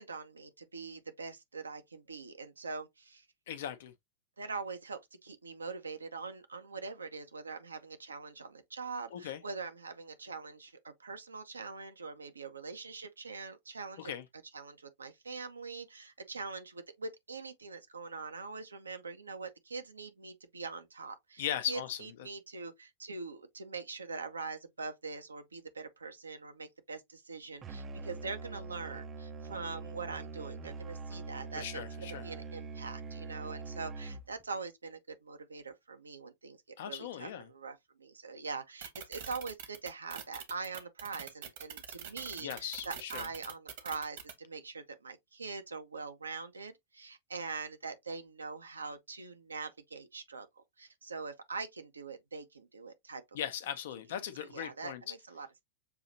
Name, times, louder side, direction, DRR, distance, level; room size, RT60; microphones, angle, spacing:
voice 1, 0.0-3.3 4.4-14.1 14.5-53.2 54.4-55.6, right 4 dB, 75° right, 0.9 m, -43 dB
voice 2, 3.5-3.9 9.1-9.4 14.0-14.2 21.4-22.0 31.5-32.3 36.8-37.5 42.4-43.3 53.3-55.0, left 10 dB, 55° left, 0.7 m, -38 dB
Musical instrument, 27.6-34.4, right 4 dB, 25° right, 0.6 m, -43 dB
sound 1, 38.8-44.3, right 8 dB, 55° right, 1.3 m, -44 dB
6.8 x 2.8 x 2.7 m
figure-of-eight pair, 90°, 0 cm